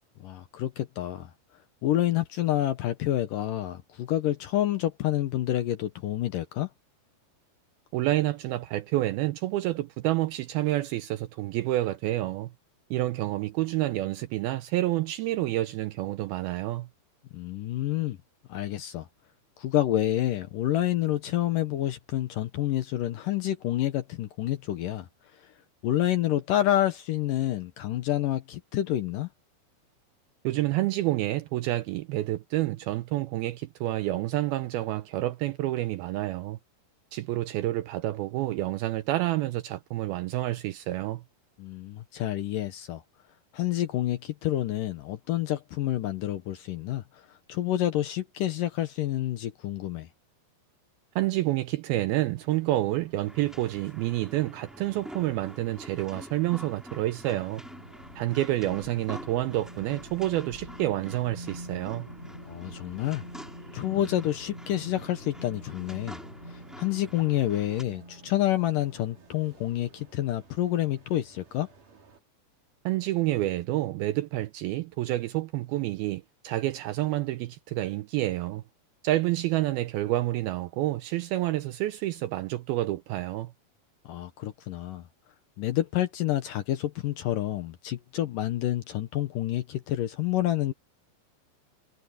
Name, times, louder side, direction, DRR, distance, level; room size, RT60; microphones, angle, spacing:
voice 1, 0.2-1.3 1.8-6.7 17.3-18.2 18.5-19.1 19.6-25.1 25.4-25.5 25.8-29.3 41.6-43.0 43.5-50.1 62.5-63.2 63.7-66.2 66.5-71.7 84.1-85.0 85.6-90.7, left 13 dB, 70° left, 2.1 m, -28 dB
voice 2, 7.9-12.5 12.9-16.9 30.4-36.6 37.1-41.2 51.2-57.6 58.2-62.1 72.9-78.6 79.0-83.5, right 16 dB, 90° right, 2.2 m, -28 dB
sound 1, 52.3-72.2, right 5 dB, 50° right, 5.2 m, -57 dB
sound 2, 53.3-67.8, equal, ahead, 2.7 m, -47 dB
sound 3, 56.9-69.4 69.8-70.0, equal, 15° left, 6.0 m, -46 dB
omnidirectional pair, 5.0 m